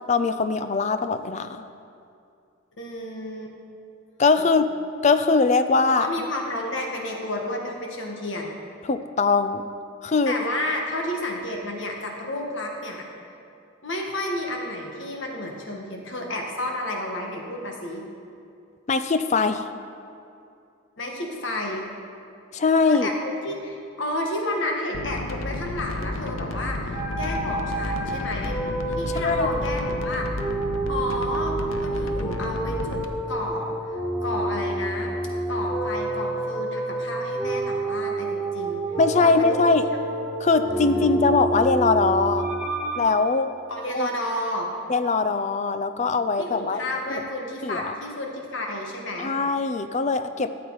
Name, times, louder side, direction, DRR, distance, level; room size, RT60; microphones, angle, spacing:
voice 1, 0.1-1.6 4.2-4.6 5.0-6.1 8.9-9.6 10.0-10.3 18.9-19.6 22.5-23.1 29.2-29.5 39.0-39.8 40.4-42.5 43.0-43.5 43.9-44.1 44.9-46.8 47.6-47.9 49.2-50.5, left 4 dB, 35° left, 10 dB, 0.4 m, -21 dB
voice 2, 2.8-3.5 4.4-4.5 5.9-8.6 10.3-13.1 13.8-18.0 21.0-21.9 22.8-28.6 28.9-30.3 30.8-33.0 33.3-35.1 35.5-38.8 39.2-39.7 40.6-41.2 43.7-44.7 46.4-49.3, left 1 dB, 65° left, 1 dB, 1.5 m, -31 dB
sound 1, 24.9-33.1, left 2 dB, 85° left, 0.7 m, -31 dB
sound 2, 26.9-43.0, right 2 dB, 5° right, 1.8 m, -29 dB
13.0 x 8.2 x 4.7 m, 2.5 s
head